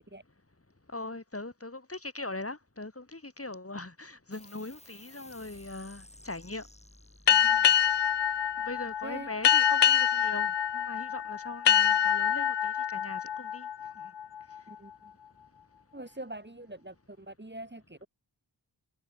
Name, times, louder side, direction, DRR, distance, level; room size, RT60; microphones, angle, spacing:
voice 1, 0.9-6.7 7.3-7.7 8.6-13.7, left 2 dB, 30° left, 5.1 m, -41 dB
sound 1, 4.3-11.2, left 1 dB, 15° left, 4.2 m, -57 dB
sound 2, 7.3-14.6, left 9 dB, 65° left, 0.7 m, -26 dB
voice 2, 14.7-15.1 15.9-18.1, right 1 dB, 25° right, 4.3 m, -44 dB
wide cardioid pair, 75°, 45 cm